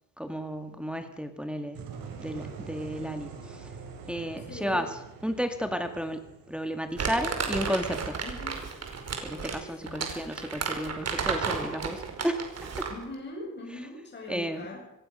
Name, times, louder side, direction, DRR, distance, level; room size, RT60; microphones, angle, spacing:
voice 1, 0.2-1.8 2.2-3.7 4.1-4.9 5.2-8.2 9.2-12.4 12.8-12.9 14.3-14.7, equal, 5° right, 6 dB, 2.0 m, -33 dB
sound 1, 1.7-7.6, right 5 dB, 90° right, 5.8 m, -44 dB
voice 2, 4.5-4.9 8.2-8.8 9.3-10.1 12.9-14.9, left 2 dB, 30° left, -1 dB, 7.8 m, -41 dB
Crumpling crinkling, 7.0-13.0, right 5 dB, 50° right, 5.2 m, -33 dB
26.0 x 21.0 x 6.7 m, 0.82 s
cardioid pair, 140°, 34 cm